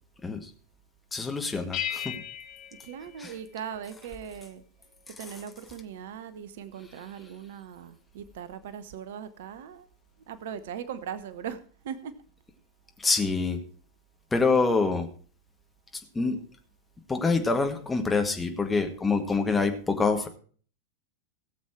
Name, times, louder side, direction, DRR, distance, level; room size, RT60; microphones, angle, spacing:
voice 1, 1.1-2.2 3.2-3.3 5.2-5.3 13.0-13.6 14.3-15.1 16.1-16.4 17.1-20.3, left 4 dB, 10° left, 4 dB, 1.8 m, -26 dB
sound 1, 1.7-3.9, left 11 dB, 35° left, 1.2 m, -37 dB
voice 2, 2.7-4.6 5.1-9.9 10.3-12.2, right 8 dB, 55° right, 14 dB, 0.9 m, -39 dB
17.5 x 7.4 x 4.5 m, 0.43 s
figure-of-eight pair, 90°, 0 cm